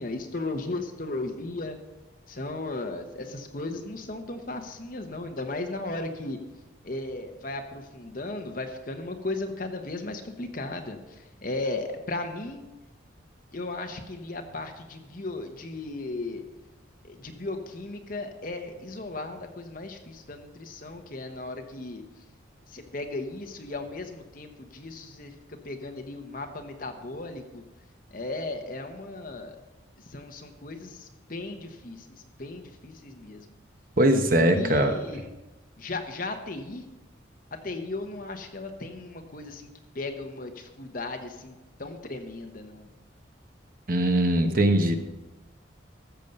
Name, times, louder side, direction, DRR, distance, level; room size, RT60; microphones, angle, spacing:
voice 1, 0.0-1.8 2.3-6.4 6.8-12.7 13.5-16.4 17.0-22.0 22.7-25.3 25.6-27.6 28.1-29.6 30.1-32.1 32.4-33.4 34.4-35.3 35.8-36.8 37.6-39.7 39.9-41.5 41.8-42.9, left 2 dB, 45° left, 5 dB, 1.1 m, -36 dB
voice 2, 34.0-34.9 43.9-45.0, right 1 dB, 45° right, 6 dB, 1.0 m, -21 dB
13.5 x 7.1 x 5.4 m, 1.1 s
head